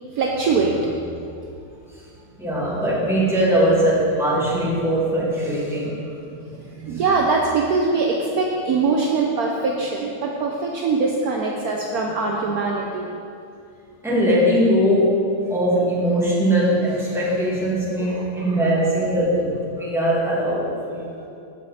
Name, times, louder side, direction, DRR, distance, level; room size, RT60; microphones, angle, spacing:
voice 1, 0.2-1.0 6.4-13.1 18.0-18.6 21.1-21.3, right 4 dB, 75° right, -1 dB, 0.8 m, -23 dB
voice 2, 2.4-6.0 14.0-21.1, equal, ahead, -8 dB, 1.8 m, -20 dB
14.0 x 4.9 x 4.2 m, 2.5 s
omnidirectional pair, 2.4 m